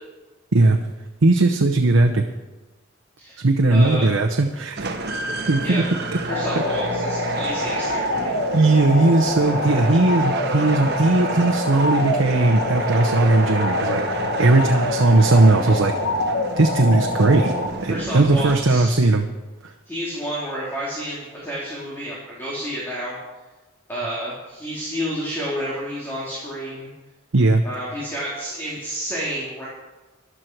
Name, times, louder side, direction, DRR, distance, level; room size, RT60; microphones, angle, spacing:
voice 1, 1.2-2.2 3.4-4.9 5.5-5.8 8.5-15.9 16.6-17.5 17.8-19.2 27.3-27.6, right 2 dB, 80° right, 4 dB, 0.8 m, -18 dB
voice 2, 3.7-4.1 5.6-5.9 6.2-8.3 17.9-19.0 19.9-23.2 23.9-26.9 27.6-29.7, equal, 10° left, -7 dB, 2.8 m, -30 dB
sound 1, 4.8-19.0, right 2 dB, 55° right, 1.3 m, -31 dB
sound 2, 6.3-17.7, left 1 dB, 65° left, 1.5 m, -26 dB
14.5 x 11.5 x 4.6 m, 1.2 s
head